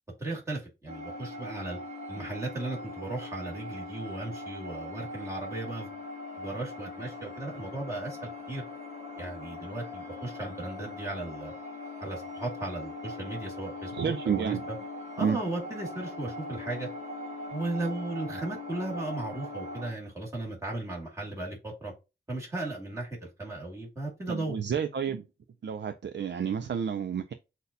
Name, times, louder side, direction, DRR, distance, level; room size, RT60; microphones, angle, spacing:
voice 1, 0.2-1.8 2.1-6.0 6.4-8.6 9.2-11.5 12.0-14.8 15.2-16.9 17.5-21.9 22.3-24.6, right 2 dB, 15° right, 2.3 m, -36 dB
sound 1, 0.9-19.9, left 2 dB, 35° right, 2.2 m, -41 dB
voice 2, 13.9-14.6 15.2-15.4 24.3-25.2 25.6-27.3, right 7 dB, 75° right, 0.5 m, -30 dB
8.1 x 2.8 x 2.2 m
wide cardioid pair, 80°, 19 cm